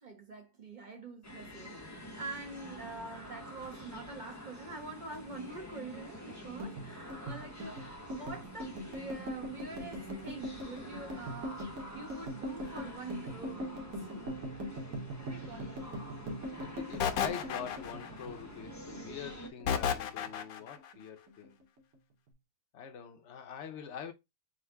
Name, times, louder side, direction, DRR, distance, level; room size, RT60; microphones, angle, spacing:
voice 1, 0.0-14.2 15.2-15.8, right 3 dB, 35° right, 1.1 m, -46 dB
sound 1, 1.2-19.5, equal, 20° left, 0.4 m, -47 dB
sound 2, 6.4-19.0 19.3-20.3 20.6-21.0 21.3-21.9, equal, 70° right, 1.4 m, -42 dB
voice 2, 16.6-21.6 22.7-24.1, left 7 dB, 60° left, 0.9 m, -45 dB
sound 3, 17.0-18.2 19.7-20.8, left 8 dB, 80° left, 1.1 m, -32 dB
3.7 x 2.5 x 4.4 m
omnidirectional pair, 1.6 m